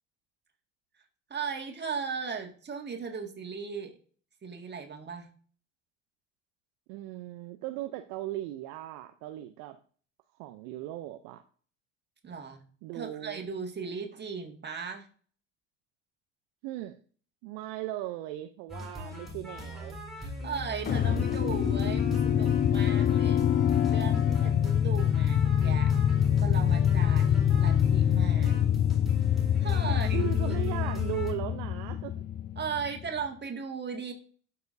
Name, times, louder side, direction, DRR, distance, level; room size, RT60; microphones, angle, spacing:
voice 1, 1.3-4.0 4.4-5.3 12.2-12.6 12.9-15.1 20.2-25.9 26.4-28.8 29.6-30.6 32.6-34.1, right 6 dB, 25° right, 3 dB, 1.9 m, -37 dB
voice 2, 6.9-9.8 10.4-11.4 12.8-13.4 16.6-17.0 17.4-20.0 29.8-32.1, right 14 dB, 60° right, 9 dB, 0.6 m, -38 dB
sound 1, 18.7-31.3, left 1 dB, ahead, 3.4 m, -40 dB
sound 2, 20.9-33.1, left 9 dB, 25° left, 0.5 m, -25 dB
12.5 x 4.8 x 2.6 m, 0.43 s
figure-of-eight pair, 65°, 38 cm